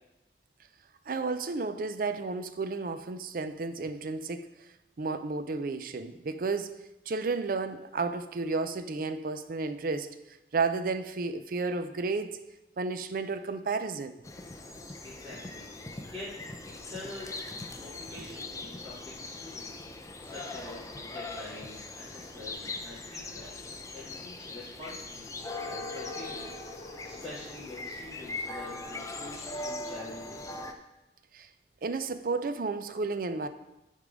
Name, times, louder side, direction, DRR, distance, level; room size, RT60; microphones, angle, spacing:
voice 1, 1.1-4.5 5.0-6.7 7.1-10.1 10.5-12.4 12.8-14.1 31.3-31.5 31.8-33.5, right 4 dB, 50° right, 10 dB, 0.4 m, -32 dB
sound 1, 14.2-30.7, left 2 dB, 20° left, 0.5 m, -40 dB
voice 2, 15.0-16.3 16.6-17.3 17.7-30.6, left 2 dB, 10° right, -14 dB, 2.2 m, -46 dB
9.8 x 3.8 x 5.0 m, 0.97 s
head